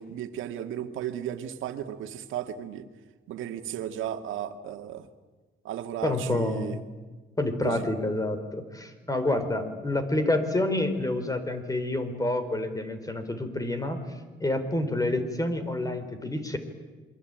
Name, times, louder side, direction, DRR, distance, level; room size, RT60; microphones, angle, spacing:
voice 1, 0.0-2.9 3.3-5.1 5.6-6.8 7.6-7.8, right 10 dB, 85° right, 8 dB, 2.0 m, -35 dB
voice 2, 6.0-6.8 7.4-14.0 14.4-16.6, left 2 dB, 15° left, 9 dB, 4.3 m, -28 dB
28.0 x 22.5 x 9.1 m, 1.3 s
cardioid pair, 90°, 20 cm